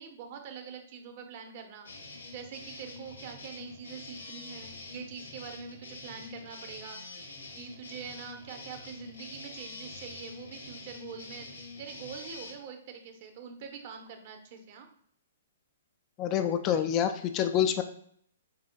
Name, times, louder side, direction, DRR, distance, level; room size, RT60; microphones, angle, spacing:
voice 1, 0.0-1.9 2.3-11.5 11.8-14.9 17.6-17.8, right 6 dB, 45° right, 5 dB, 0.8 m, -44 dB
sound 1, 1.8-12.5, left 3 dB, 85° left, 1.1 m, -46 dB
voice 2, 16.2-17.8, left 9 dB, 30° left, 8 dB, 0.3 m, -27 dB
4.1 x 3.9 x 2.3 m, 0.65 s
hypercardioid pair, 125°, 0 cm